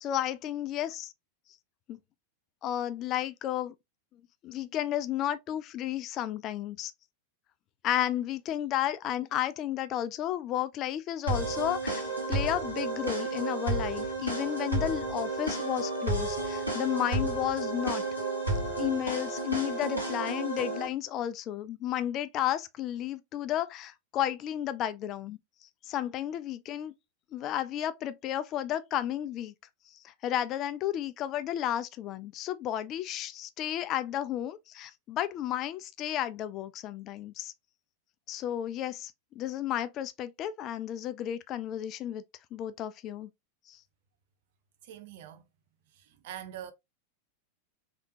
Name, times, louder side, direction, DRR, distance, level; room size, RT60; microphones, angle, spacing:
voice 1, 0.0-1.1 1.9-2.0 2.6-3.7 4.4-6.9 7.8-18.0 18.8-25.4 25.8-26.9 27.3-29.5 30.0-37.5 38.3-42.2 42.5-43.3 43.7-43.8, left 11 dB, 35° left, 0.3 m, -32 dB
sound 1, 11.3-20.9, right 2 dB, 85° right, 1.1 m, -32 dB
voice 2, 44.8-45.4 45.9-46.7, right 10 dB, 50° right, 0.6 m, -44 dB
3.5 x 2.7 x 2.5 m
figure-of-eight pair, 90°, 0 cm